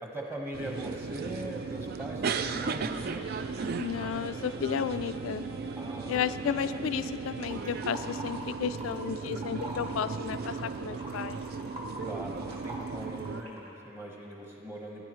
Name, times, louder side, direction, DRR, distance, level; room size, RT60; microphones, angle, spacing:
voice 1, 0.0-3.7 5.7-6.2 6.5-6.8 11.9-15.0, right 1 dB, 10° right, -2 dB, 1.2 m, -41 dB
sound 1, 0.5-13.4, right 5 dB, 50° right, 0.3 m, -36 dB
sound 2, 2.9-8.7, right 1 dB, 65° right, 0.8 m, -50 dB
voice 2, 3.7-5.5 6.1-11.4, left 8 dB, 90° left, 11 dB, 0.3 m, -33 dB
sound 3, 7.5-9.0 9.2-13.7, right 1 dB, 30° right, 1.3 m, -43 dB
16.5 x 10.5 x 3.1 m, 2.9 s
head